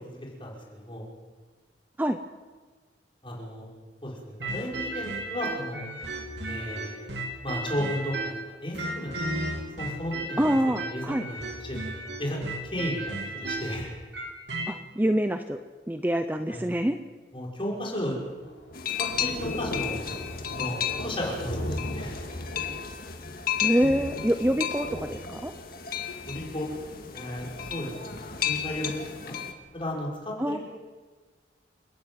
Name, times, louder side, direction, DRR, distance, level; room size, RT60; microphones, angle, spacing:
voice 1, 0.4-1.1 3.2-3.7 4.0-5.9 6.5-7.0 7.4-8.3 8.6-9.1 9.5-11.8 12.2-13.9 16.5-16.7 17.3-18.5 19.0-20.0 20.5-22.2 26.3-26.7 27.1-28.9 29.2-29.4 29.7-30.6, left 1 dB, 30° left, -3 dB, 5.9 m, -34 dB
sound 1, 4.4-8.4 8.7-14.7, right 2 dB, 65° right, 3.1 m, -34 dB
voice 2, 10.4-11.2 14.7-15.6 15.9-17.0 23.6-25.5 30.4-30.6, equal, 10° right, 8 dB, 0.7 m, -26 dB
Thunder / Rain, 18.2-29.9, left 1 dB, 80° left, 5.6 m, -39 dB
sound 2, 18.7-29.5, left 9 dB, 55° left, 1.9 m, -34 dB
30.0 x 10.5 x 9.3 m, 1.4 s
head